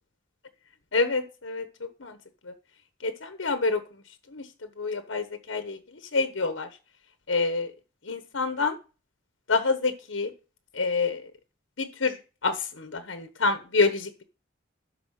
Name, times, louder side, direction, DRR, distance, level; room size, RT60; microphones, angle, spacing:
voice 1, 0.9-1.6 2.0-2.2 2.4-2.5 3.0-3.8 4.3-4.4 4.8-6.7 7.3-7.7 8.0-8.8 9.5-10.3 10.7-11.2 11.8-12.2 12.4-14.1, left 3 dB, 80° left, 9 dB, 1.1 m, -27 dB
12.5 x 4.7 x 6.4 m, 0.33 s
head